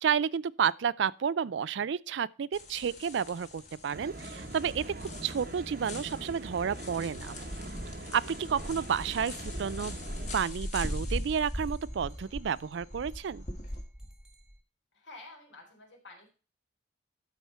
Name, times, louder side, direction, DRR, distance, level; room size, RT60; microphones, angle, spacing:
voice 1, 0.0-7.4 8.1-10.0 10.3-13.4, right 7 dB, 70° right, 0.4 m, -31 dB
sound 1, 2.5-13.8, left 2 dB, 35° left, 1.7 m, -44 dB
sound 2, 3.9-10.4, right 1 dB, 50° right, 1.0 m, -42 dB
sound 3, 7.3-14.5, equal, ahead, 1.4 m, -40 dB
voice 2, 14.9-16.3, left 2 dB, 80° left, 3.8 m, -50 dB
13.0 x 4.4 x 5.5 m
head